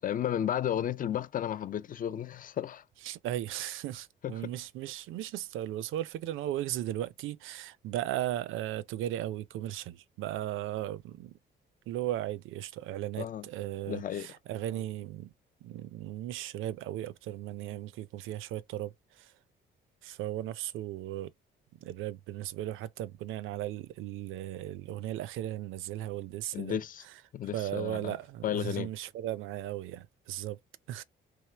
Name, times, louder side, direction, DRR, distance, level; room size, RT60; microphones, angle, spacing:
voice 1, 0.0-2.8 4.2-4.5 13.2-13.5 13.9-14.3 26.5-27.0 27.3-28.1 28.4-28.9, left 10 dB, 45° left, 0.4 m, -33 dB
voice 2, 3.0-11.4 11.9-15.3 15.6-19.3 20.0-21.3 21.8-26.8 27.5-30.6 30.9-31.0, right 13 dB, 85° right, 0.5 m, -36 dB
3.4 x 3.1 x 3.2 m
cardioid pair, 90°, 20 cm